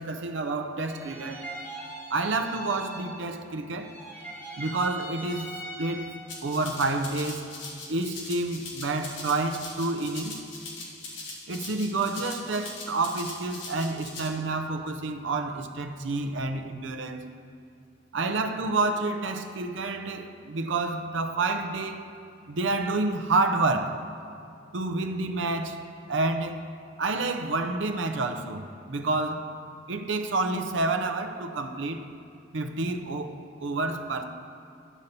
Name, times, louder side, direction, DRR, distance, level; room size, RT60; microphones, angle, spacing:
voice 1, 0.0-1.4 2.1-3.9 4.6-5.5 5.8-6.1 6.4-7.5 7.9-10.4 11.5-17.3 18.1-22.1 22.5-24.0 24.7-25.8 26.1-26.6 27.0-29.5 29.9-32.0 32.5-34.2, right 3 dB, 75° right, 6 dB, 0.7 m, -29 dB
sound 1, 0.8-3.5 3.7-6.5, right 1 dB, 10° left, 1.4 m, -41 dB
Rattle (instrument), 6.3-14.3, left 3 dB, 70° left, 1.5 m, -41 dB
11.0 x 4.2 x 6.7 m, 2.6 s
head